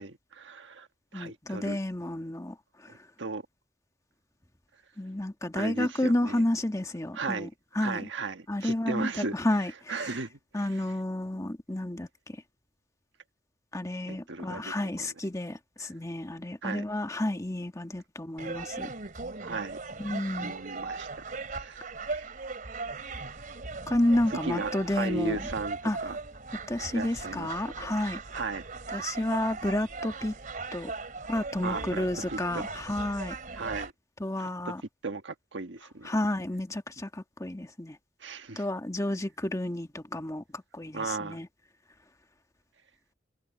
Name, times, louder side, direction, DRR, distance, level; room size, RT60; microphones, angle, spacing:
voice 1, 0.0-1.8 2.9-3.4 5.5-6.4 7.1-7.5 7.7-9.4 9.9-10.7 14.1-14.7 15.0-15.1 16.6-16.8 19.4-19.8 20.4-21.1 21.5-22.3 23.1-23.2 24.4-26.2 26.9-27.5 28.3-28.6 31.6-32.7 33.6-33.9 34.4-34.7 35.0-36.2 38.2-38.7 40.9-41.4, right 3 dB, 75° right, 1.5 m, -36 dB
voice 2, 1.1-2.5 2.8-3.0 5.0-7.5 7.7-8.1 8.5-10.0 10.5-12.4 13.7-18.9 20.0-20.6 23.9-25.5 25.8-26.0 26.7-28.2 28.9-30.3 30.7-30.9 31.3-33.3 34.2-34.8 36.0-38.0 38.5-41.5, left 1 dB, 15° left, 1.5 m, -31 dB
sound 1, 18.4-33.9, right 3 dB, 45° right, 2.9 m, -39 dB
head